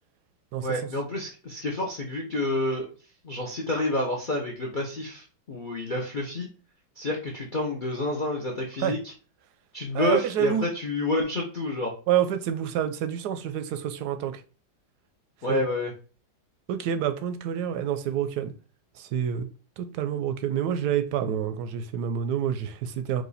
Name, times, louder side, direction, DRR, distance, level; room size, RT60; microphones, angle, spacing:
voice 1, 0.6-2.9 3.2-6.5 7.0-9.0 9.7-11.9 15.4-15.9, left 1 dB, 65° left, 0.4 m, -29 dB
voice 2, 9.9-10.7 12.1-14.4 15.5-15.6 16.7-18.5 19.0-19.5 19.8-23.2, right 9 dB, 70° right, 1.0 m, -28 dB
4.7 x 2.6 x 4.0 m
omnidirectional pair, 2.1 m